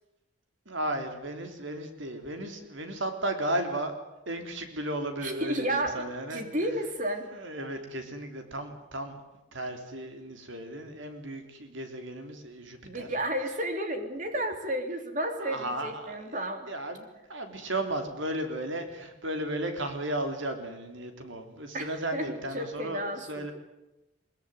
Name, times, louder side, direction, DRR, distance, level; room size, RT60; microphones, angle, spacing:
voice 1, 0.7-3.9 4.3-6.5 7.3-9.2 9.5-13.1 15.4-23.5, right 1 dB, 70° right, 6 dB, 3.5 m, -35 dB
voice 2, 5.2-7.3 12.8-16.7 21.7-23.4, right 1 dB, 40° right, 6 dB, 3.4 m, -32 dB
22.0 x 22.0 x 9.4 m, 0.94 s
head